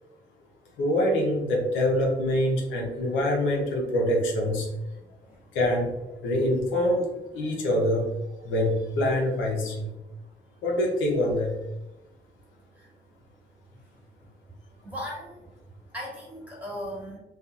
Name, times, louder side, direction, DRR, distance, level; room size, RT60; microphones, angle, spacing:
voice 1, 0.8-4.7 5.5-5.9 6.2-8.1 8.4-9.9 10.6-11.6, left 1 dB, 85° left, -1 dB, 0.7 m, -25 dB
voice 2, 14.8-15.4 15.9-17.2, equal, 5° right, -5 dB, 1.3 m, -37 dB
2.6 x 2.4 x 2.4 m, 0.97 s
cardioid pair, 75°, 20 cm